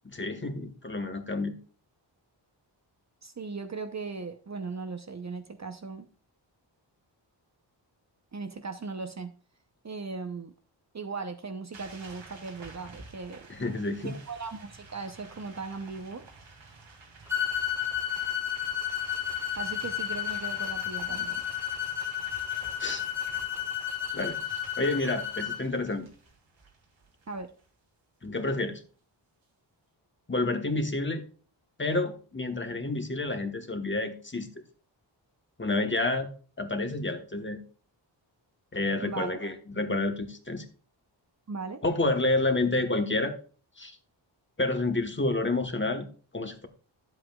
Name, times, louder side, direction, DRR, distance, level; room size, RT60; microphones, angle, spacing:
voice 1, 0.0-1.5 13.5-14.1 22.8-23.0 24.1-24.4 24.8-26.1 28.2-28.8 30.3-31.2 31.8-34.5 35.6-36.3 36.6-37.6 38.7-40.6 41.8-43.3 43.8-44.0 44.6-46.1 46.3-46.7, left 2 dB, 25° left, 6 dB, 1.2 m, -29 dB
voice 2, 3.2-6.1 8.3-9.3 9.8-10.5 10.9-13.5 14.0-16.3 19.6-21.4 27.3-27.5 39.0-39.4 41.5-41.8, right 4 dB, 35° right, 7 dB, 0.8 m, -38 dB
sound 1, 11.7-27.7, right 3 dB, 85° right, 2.3 m, -51 dB
sound 2, 17.3-25.6, left 9 dB, 5° right, 1.4 m, -32 dB
11.0 x 7.9 x 2.3 m, 0.39 s
wide cardioid pair, 125°, 46 cm